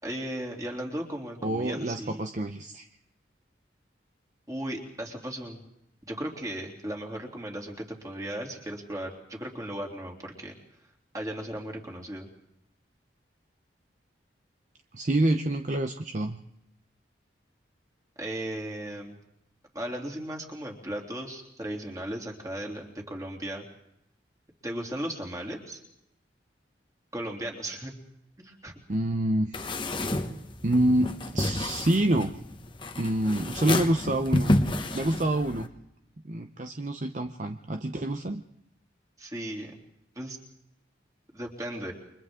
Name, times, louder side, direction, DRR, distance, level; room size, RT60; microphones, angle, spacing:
voice 1, 0.0-2.2 4.5-5.6 6.1-10.5 11.1-12.3 18.2-19.1 19.7-23.6 24.6-25.8 27.1-27.9 28.4-28.7 39.2-39.8 40.1-40.4 41.3-41.9, right 1 dB, 20° right, 0 dB, 3.2 m, -36 dB
voice 2, 1.4-2.9 14.9-16.4 28.9-29.8 30.6-32.3 33.0-34.6 34.9-35.7 36.2-38.4, right 1 dB, 45° right, 6 dB, 0.8 m, -27 dB
sound 1, 29.5-35.7, left 1 dB, 25° left, 1.3 m, -30 dB
29.0 x 24.0 x 3.8 m, 0.81 s
head